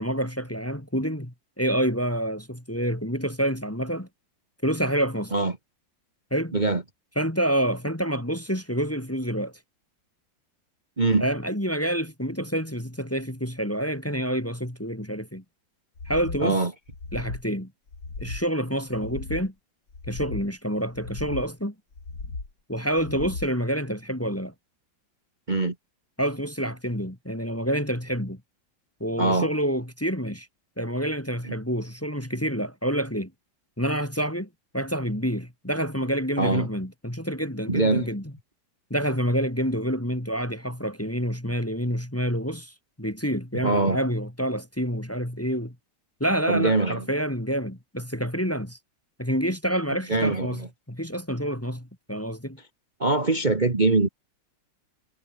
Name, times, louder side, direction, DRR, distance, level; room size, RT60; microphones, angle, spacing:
voice 1, 0.0-4.1 4.6-5.3 6.3-6.5 7.2-9.5 11.2-15.4 16.1-16.7 17.1-17.7 18.2-19.5 20.1-21.7 22.7-24.5 26.2-28.4 29.0-30.5 30.8-33.3 33.8-34.5 34.7-38.3 38.9-45.8 46.2-48.8 49.2-52.6, equal, 5° left, 2.3 m, -28 dB
sound 1, 16.0-16.5 16.9-17.5 17.9-18.5 18.9-19.5 19.9-20.5 20.9-21.5 21.9-22.5 22.9-23.5, left 3 dB, 60° left, 4.6 m, -36 dB
voice 2, 16.4-16.7 25.5-25.7 29.2-29.5 36.4-36.7 37.7-38.1 43.6-44.0 46.5-47.0 50.1-50.5 53.0-54.1, right 3 dB, 25° right, 1.8 m, -22 dB
omnidirectional pair, 2.1 m